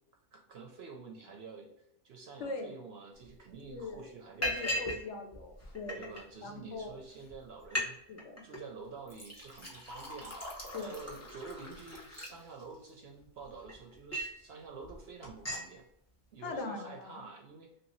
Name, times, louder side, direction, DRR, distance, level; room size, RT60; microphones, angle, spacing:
voice 1, 0.3-1.7 2.0-4.9 5.9-8.0 8.4-15.8 16.3-17.7, right 4 dB, 65° right, 2 dB, 0.6 m, -48 dB
voice 2, 2.4-2.7 3.7-4.0 4.4-6.0 6.4-7.0 8.1-8.4 10.7-11.3 16.4-17.1, left 3 dB, 65° left, 4 dB, 0.8 m, -41 dB
Liquid, 3.2-3.3 3.7-3.9 4.4-5.0 5.3-6.2 6.9-7.0 7.3-7.4 7.6-7.9 8.2-8.6 9.1-12.9 13.4-14.4 14.8-15.0 15.2-15.7, left 1 dB, 20° left, 0.4 m, -38 dB
3.0 x 2.7 x 2.9 m, 0.79 s
omnidirectional pair, 1.5 m